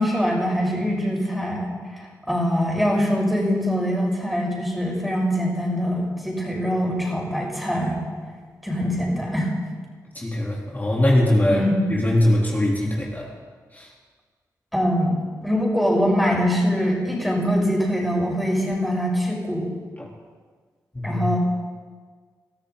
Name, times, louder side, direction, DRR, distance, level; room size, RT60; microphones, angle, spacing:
voice 1, 0.0-8.0 8.6-9.5 11.5-11.8 14.7-15.1 15.4-19.7 21.0-21.4, equal, ahead, -2 dB, 6.4 m, -23 dB
voice 2, 10.2-11.6 11.9-13.3 13.7-13.9 20.0-20.1 20.9-21.3, left 1 dB, 25° left, -4 dB, 3.7 m, -21 dB
22.5 x 13.5 x 4.1 m, 1.5 s
cardioid pair, 50°, 7 cm